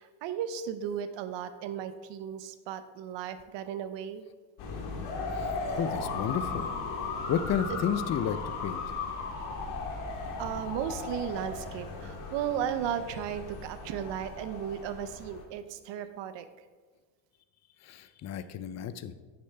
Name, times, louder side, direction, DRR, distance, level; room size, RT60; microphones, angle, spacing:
voice 1, 0.0-4.2 10.4-16.5, right 9 dB, 60° right, 11 dB, 0.8 m, -35 dB
sound 1, 4.6-15.4, left 4 dB, 80° left, 1.8 m, -36 dB
voice 2, 5.3-6.7 7.3-8.8 17.8-19.1, left 8 dB, 35° left, 12 dB, 0.5 m, -32 dB
9.7 x 6.7 x 3.4 m, 1.4 s
cardioid pair, 110°, 50 cm